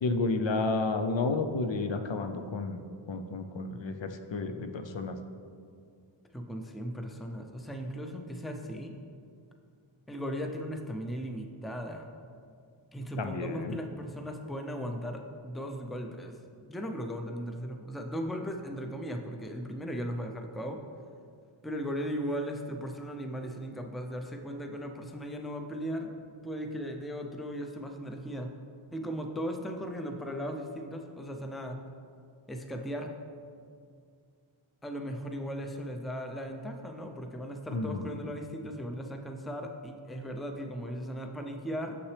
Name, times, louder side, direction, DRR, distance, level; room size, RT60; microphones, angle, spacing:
voice 1, 0.0-2.8 3.1-5.1 13.2-13.8 37.7-38.1, left 3 dB, 65° left, 6 dB, 0.5 m, -31 dB
voice 2, 6.3-8.9 10.1-12.1 12.9-16.4 16.7-20.8 21.6-26.1 26.4-28.5 28.9-31.8 32.5-33.1 34.8-42.0, equal, ahead, 4 dB, 0.4 m, -37 dB
6.6 x 5.8 x 3.3 m, 2.3 s
wide cardioid pair, 45°, 49 cm